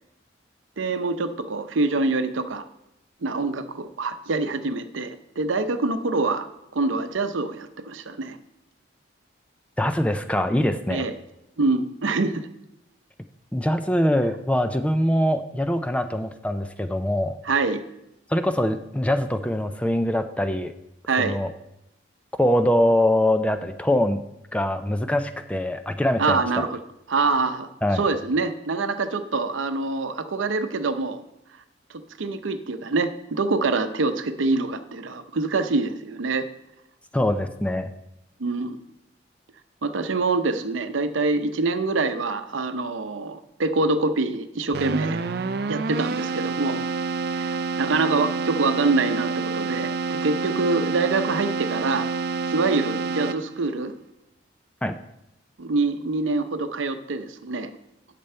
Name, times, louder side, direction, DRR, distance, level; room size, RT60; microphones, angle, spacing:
voice 1, 0.8-2.6 3.2-6.5 6.7-8.4 10.9-11.1 11.6-12.5 17.4-17.8 21.1-21.4 26.2-26.8 27.1-27.7 27.9-31.2 32.2-36.5 38.4-38.8 39.8-45.2 45.7-46.8 47.3-52.1 52.5-53.9 55.6-57.7, right 3 dB, 90° right, 9 dB, 0.7 m, -25 dB
voice 2, 9.8-11.0 13.5-17.4 18.3-20.7 21.2-21.5 22.4-24.2 24.5-26.7 27.8-28.0 37.1-37.9 54.8-55.0, left 1 dB, 5° left, 9 dB, 0.4 m, -23 dB
Keyboard (musical), 44.7-53.7, right 4 dB, 55° right, 0.4 m, -28 dB
10.0 x 6.8 x 4.4 m, 0.86 s
head